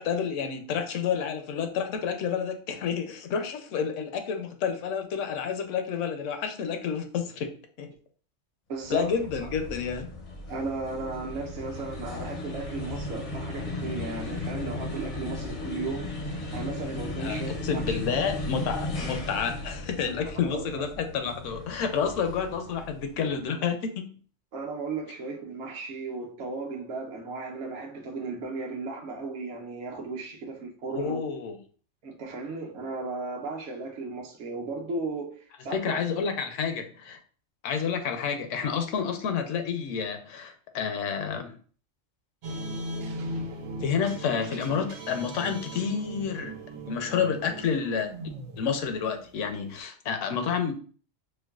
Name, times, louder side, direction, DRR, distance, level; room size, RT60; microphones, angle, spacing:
voice 1, 0.0-7.5 7.8-7.9 8.9-10.1 17.2-24.2 30.9-31.6 35.7-37.2 37.6-41.6 43.8-46.5 46.9-48.1 48.6-50.7, left 6 dB, 80° left, 0.9 m, -29 dB
voice 2, 8.7-9.1 10.5-16.1 16.5-18.0 20.5-20.7 24.5-31.2 32.0-36.0, right 3 dB, 65° right, 0.9 m, -35 dB
sound 1, 8.8-23.3, left 2 dB, 45° left, 0.4 m, -36 dB
sound 2, 42.4-49.8, right 1 dB, 90° right, 1.1 m, -38 dB
4.5 x 2.1 x 2.3 m
omnidirectional pair, 1.3 m